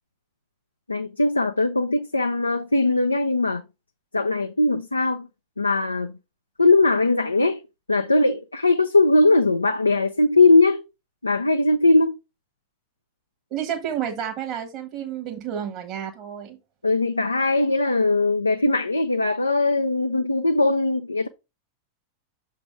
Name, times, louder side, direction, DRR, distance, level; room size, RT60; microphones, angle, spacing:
voice 1, 0.9-3.6 4.1-5.3 5.6-6.1 6.6-7.6 7.9-10.8 11.2-12.2 16.8-21.3, left 2 dB, 80° left, 0.4 m, -20 dB
voice 2, 13.5-16.6, right 9 dB, 40° right, 1.3 m, -30 dB
6.8 x 3.5 x 4.6 m
figure-of-eight pair, 90°, 0 cm